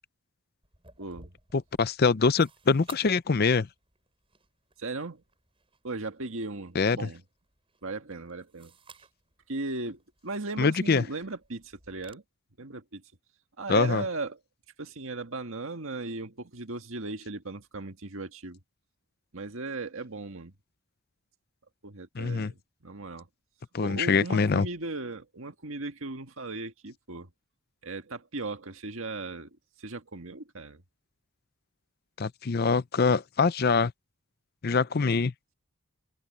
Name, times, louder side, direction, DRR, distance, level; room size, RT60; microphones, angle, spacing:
sound 1, 0.6-12.1, right 4 dB, 25° right, 6.9 m, -57 dB
voice 1, 1.0-1.3 4.8-5.2 5.8-7.2 7.8-8.7 9.5-12.2 12.6-13.0 13.6-14.4 14.8-18.6 19.3-20.5 21.8-23.3 23.8-27.3 27.8-30.8 34.7-34.8, right 3 dB, 70° right, 1.8 m, -37 dB
voice 2, 1.5-3.7 6.7-7.1 10.6-11.0 13.7-14.0 22.2-22.5 23.7-24.7 32.2-33.9 34.6-35.3, left 4 dB, 45° left, 0.5 m, -24 dB
head